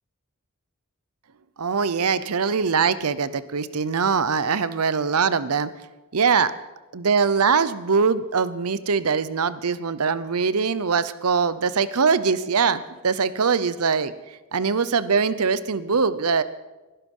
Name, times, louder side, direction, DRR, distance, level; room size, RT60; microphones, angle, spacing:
voice 1, 1.6-5.7 6.1-6.5 6.9-14.1 14.5-16.4, right 5 dB, 75° right, 15 dB, 0.8 m, -22 dB
21.0 x 11.5 x 5.5 m, 1.2 s
head